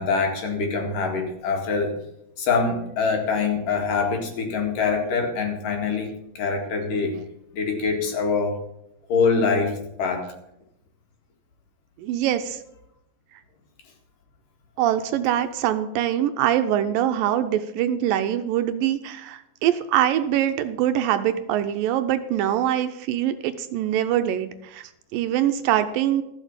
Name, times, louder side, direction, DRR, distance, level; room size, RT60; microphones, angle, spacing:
voice 1, 0.0-1.9 2.4-7.2 7.5-8.6 9.1-10.3, left 4 dB, 65° left, 2 dB, 3.6 m, -24 dB
voice 2, 12.0-12.6 14.8-26.2, right 11 dB, 80° right, 9 dB, 2.3 m, -23 dB
14.0 x 7.2 x 7.2 m, 0.83 s
omnidirectional pair, 4.3 m